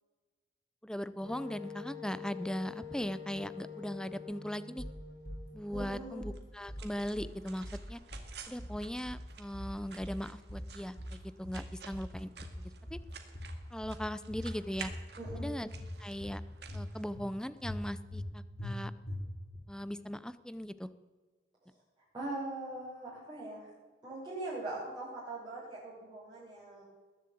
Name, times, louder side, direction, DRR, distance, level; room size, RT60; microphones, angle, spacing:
voice 1, 0.8-4.8 5.5-8.0 8.5-12.3 12.6-13.0 13.7-14.9 15.4-15.7 16.0-16.4 16.7-18.9 19.7-20.9, equal, 5° left, 15 dB, 0.5 m, -39 dB
Wind instrument woodwind instrument, 1.2-5.9, left 6 dB, 80° left, 3.5 m, -47 dB
sound 1, 4.8-5.4 5.7-6.4 6.7-7.4 7.6-8.3 8.6-9.3 9.5-10.2 10.5-11.2 11.4-12.1 12.4-13.1 13.3-14.0 14.3-15.0 15.3-15.9 16.2-16.9 17.1-17.3 17.6-18.3 18.6-18.7 19.1-19.6, left 1 dB, 60° left, 3.0 m, -42 dB
voice 2, 5.7-6.3 15.2-15.5 22.1-23.6 24.0-26.8, right 2 dB, 25° right, -11 dB, 6.6 m, -41 dB
sound 2, 6.3-17.6, right 6 dB, 65° right, 2.0 m, -52 dB
20.5 x 7.6 x 8.4 m, 1.4 s
head